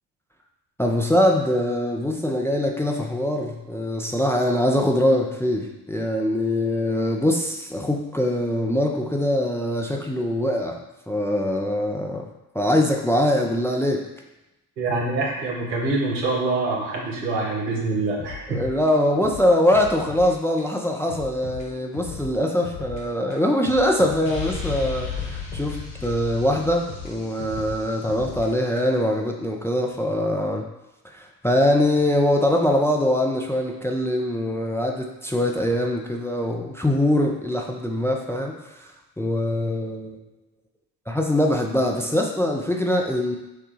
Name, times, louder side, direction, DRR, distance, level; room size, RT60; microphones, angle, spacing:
voice 1, 0.8-10.8 11.1-12.3 12.5-14.0 18.5-30.7 31.2-38.9 39.2-40.2 41.1-43.4, left 1 dB, 5° left, 1 dB, 0.5 m, -23 dB
voice 2, 14.8-18.6, right 3 dB, 85° right, -3 dB, 1.0 m, -25 dB
sound 1, 18.2-20.3 20.6-20.7 21.1-23.0 23.3-26.2 26.5-29.1, left 6 dB, 85° left, 0.9 m, -39 dB
sound 2, 24.2-28.0, left 6 dB, 65° left, 1.3 m, -33 dB
6.1 x 2.3 x 3.1 m, 1.0 s
hypercardioid pair, 45°, 49 cm